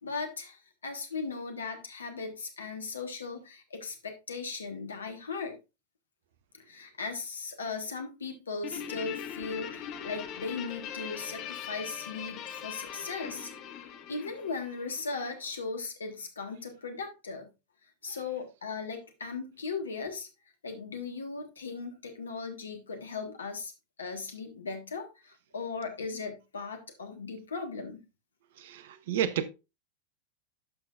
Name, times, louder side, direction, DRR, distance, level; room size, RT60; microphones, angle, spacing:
voice 1, 0.0-5.6 6.5-13.5 13.8-17.5 18.0-20.3 20.6-23.7 24.0-28.0, left 4 dB, 70° left, 1.4 m, -38 dB
Guitar, 8.6-15.3, left 9 dB, 35° left, 0.9 m, -41 dB
voice 2, 28.6-29.5, right 9 dB, 55° right, 0.7 m, -31 dB
11.5 x 5.6 x 2.4 m
figure-of-eight pair, 90°, 0 cm